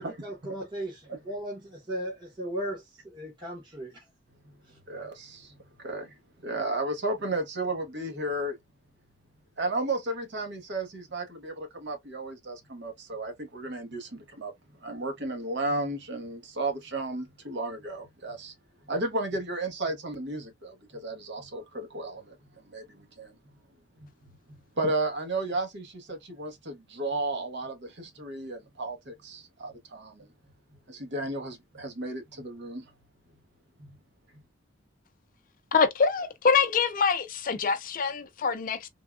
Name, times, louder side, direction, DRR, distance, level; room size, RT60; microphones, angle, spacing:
voice 1, 0.0-4.0 4.7-4.8, right 1 dB, 25° right, 0.9 m, -37 dB
voice 2, 4.9-6.2 6.4-8.6 9.6-14.5 14.8-18.5 18.8-23.3 24.0-24.1 24.8-30.3 30.9-32.9 33.8-33.9 34.3-34.4, right 2 dB, 60° right, 1.0 m, -33 dB
voice 3, 35.7-38.9, left 5 dB, 45° left, 0.4 m, -25 dB
3.5 x 2.2 x 2.3 m
head